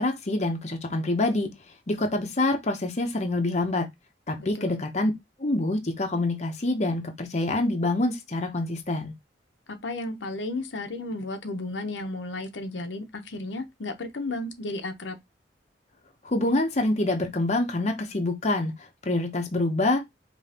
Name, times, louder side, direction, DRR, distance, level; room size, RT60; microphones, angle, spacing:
voice 1, 0.0-1.5 1.9-3.9 4.3-5.1 5.4-9.1 16.2-20.0, left 2 dB, 40° left, 0.8 m, -26 dB
voice 2, 4.4-4.8 9.7-15.2, left 2 dB, 90° left, 0.8 m, -33 dB
5.1 x 3.0 x 2.9 m
head